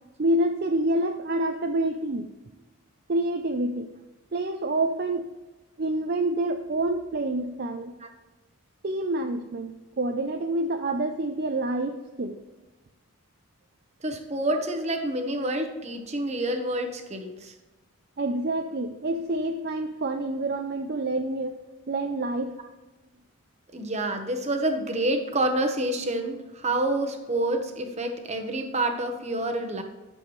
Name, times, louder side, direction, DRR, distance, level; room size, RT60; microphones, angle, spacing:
voice 1, 0.2-2.3 3.1-3.9 4.3-5.3 5.8-7.9 8.8-12.4 18.2-21.6 21.9-22.5, right 1 dB, 45° right, 5 dB, 0.5 m, -27 dB
voice 2, 14.0-17.5 23.7-29.8, right 1 dB, 30° right, 4 dB, 1.0 m, -28 dB
11.0 x 7.0 x 3.2 m, 1.1 s
head